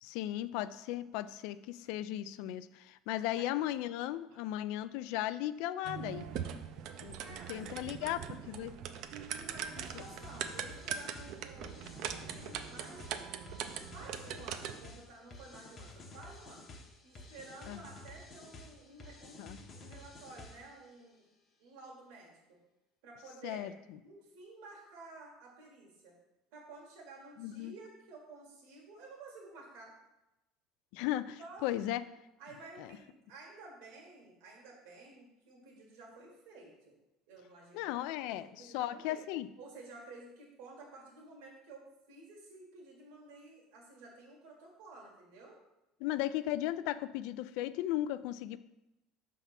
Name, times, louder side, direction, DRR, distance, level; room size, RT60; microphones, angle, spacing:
voice 1, 0.0-6.3 7.0-7.2 7.5-8.2 8.5-8.7 9.9-10.0 17.7-17.8 19.4-19.6 23.4-23.7 27.4-27.7 30.9-32.0 32.8-32.9 37.7-39.5 46.0-48.6, left 13 dB, 70° left, 15 dB, 0.3 m, -36 dB
sound 1, 5.8-14.9, right 8 dB, 55° right, 0.4 m, -41 dB
voice 2, 7.2-8.4 9.4-13.3 13.9-16.6 17.0-21.3 21.6-22.6 23.0-23.8 24.0-26.2 26.5-29.9 31.4-31.8 32.4-37.0 37.3-38.3 38.6-39.2 39.6-45.6, right 3 dB, 75° right, -2 dB, 1.6 m, -52 dB
sound 2, 9.8-20.8, left 2 dB, 30° left, 0.8 m, -52 dB
5.8 x 3.5 x 5.7 m, 0.95 s
cardioid pair, 155°, 0 cm